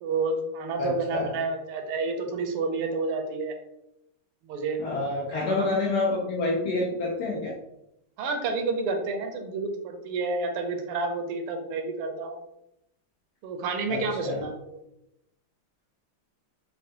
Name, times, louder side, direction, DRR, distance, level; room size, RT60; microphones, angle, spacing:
voice 1, 0.0-3.5 4.4-4.8 5.4-5.7 8.2-12.4 13.4-14.8, right 3 dB, 80° right, 4 dB, 1.5 m, -30 dB
voice 2, 0.8-1.3 4.8-7.6 13.9-14.5, left 2 dB, 75° left, -2 dB, 0.9 m, -28 dB
5.3 x 2.2 x 2.6 m, 0.82 s
omnidirectional pair, 2.4 m